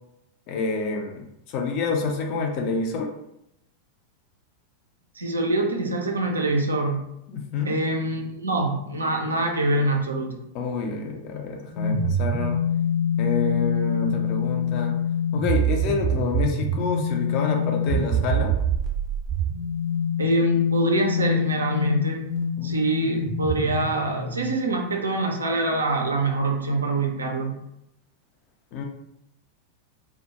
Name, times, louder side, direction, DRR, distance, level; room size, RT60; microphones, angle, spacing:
voice 1, 0.5-3.1 7.3-7.7 10.5-12.6 13.2-15.0 15.3-18.5 22.6-22.7 23.0-23.1 28.7-28.8, left 4 dB, 40° left, 2 dB, 0.4 m, -28 dB
voice 2, 5.2-7.0 7.7-10.4 20.2-22.3 22.6-27.5, right 2 dB, 75° right, 1 dB, 0.4 m, -25 dB
sound 1, 11.7-24.6, left 2 dB, 20° right, 0.5 m, -25 dB
2.2 x 2.1 x 2.8 m, 0.81 s
figure-of-eight pair, 90°, 0 cm